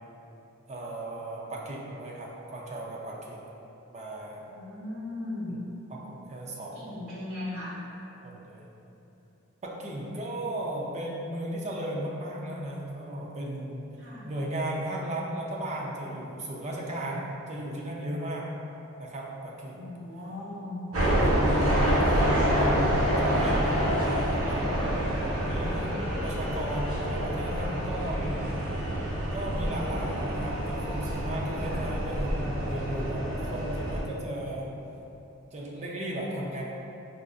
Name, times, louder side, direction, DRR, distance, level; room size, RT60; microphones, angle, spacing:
voice 1, 0.7-3.4 3.9-4.4 5.5-5.6 5.9-7.0 8.2-8.7 9.6-13.9 14.2-18.5 19.0-19.8 21.0-24.9 25.4-28.7 29.3-34.7 35.5-36.6, right 1 dB, 35° right, -3 dB, 0.5 m, -35 dB
voice 2, 4.5-5.6 6.7-7.8 14.0-14.3 19.6-20.7 24.7-24.9 31.6-31.8, left 2 dB, 55° right, -10 dB, 1.3 m, -38 dB
sound 1, 20.9-34.0, equal, 85° right, 1.0 m, -27 dB
4.9 x 2.5 x 2.4 m, 3.0 s
head